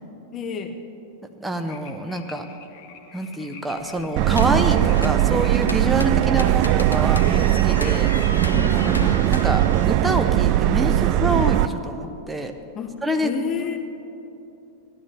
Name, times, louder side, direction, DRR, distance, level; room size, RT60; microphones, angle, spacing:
voice 1, 0.3-0.8 8.5-9.3 12.8-12.9 13.2-13.9, left 7 dB, 30° left, 7 dB, 0.7 m, -30 dB
voice 2, 1.4-2.5 3.1-8.1 9.1-12.5 13.0-13.3, right 1 dB, 5° right, 5 dB, 0.9 m, -26 dB
sound 1, 1.5-8.2, left 6 dB, 50° left, 1.1 m, -46 dB
sound 2, 3.8-10.3, left 2 dB, 80° left, 0.7 m, -35 dB
Subway metro underground, 4.2-11.7, right 14 dB, 40° right, 0.3 m, -19 dB
17.0 x 12.0 x 3.3 m, 2.8 s
figure-of-eight pair, 90°, 0 cm